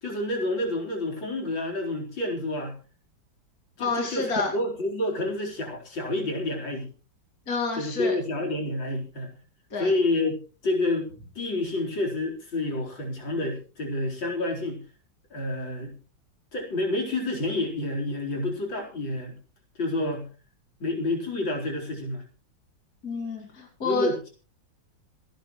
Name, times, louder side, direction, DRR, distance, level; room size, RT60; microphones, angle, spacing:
voice 1, 0.0-2.8 3.8-6.9 7.8-9.3 9.8-10.4 10.6-11.1 11.3-14.8 15.3-15.9 16.5-19.4 19.8-20.3 20.8-22.2 23.8-24.3, left 2 dB, 75° left, 0 dB, 5.0 m, -29 dB
voice 2, 3.8-4.5 7.5-8.1 9.7-9.9 23.0-24.1, left 3 dB, 50° left, 1 dB, 3.2 m, -28 dB
28.0 x 10.5 x 3.2 m, 0.36 s
omnidirectional pair, 2.1 m